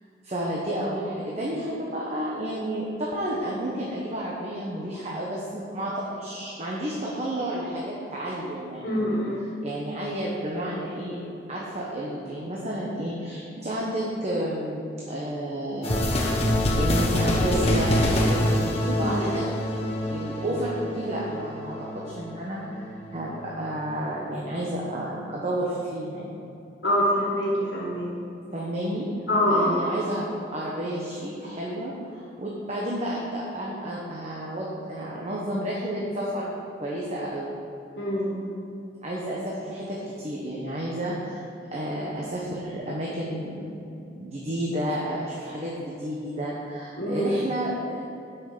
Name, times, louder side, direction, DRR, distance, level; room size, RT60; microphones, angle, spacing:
voice 1, 0.2-9.2 9.6-11.2 11.5-16.0 16.5-19.4 20.1-22.9 23.1-26.4 28.5-29.1 29.5-30.3 30.5-37.5 39.0-41.4 41.7-43.6 43.9-48.0, right 1 dB, 40° right, -4 dB, 1.2 m, -31 dB
voice 2, 8.8-9.4 19.0-19.2 26.8-28.3 29.3-29.7 38.0-38.5 47.0-47.3, equal, 75° left, -5 dB, 1.7 m, -25 dB
sound 1, 15.8-23.5, left 1 dB, 35° left, 1.2 m, -26 dB
8.2 x 6.2 x 6.8 m, 2.8 s
head